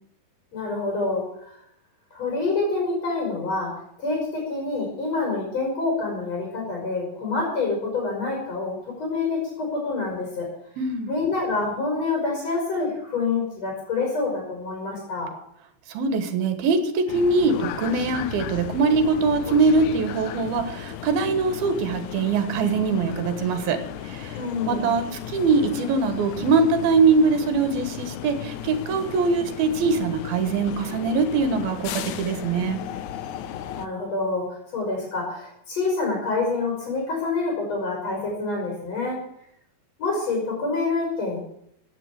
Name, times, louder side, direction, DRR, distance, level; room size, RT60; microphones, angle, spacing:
voice 1, 0.5-1.5 2.1-10.5 11.1-15.3 24.3-24.8 33.7-39.2 40.0-41.4, left 3 dB, 45° left, -2 dB, 6.2 m, -27 dB
voice 2, 10.8-11.1 15.9-24.4 24.7-32.8, right 4 dB, 80° right, 10 dB, 3.3 m, -22 dB
sound 1, 17.1-33.9, left 10 dB, 75° left, 1.8 m, -35 dB
15.5 x 9.0 x 8.6 m, 0.73 s
omnidirectional pair, 4.3 m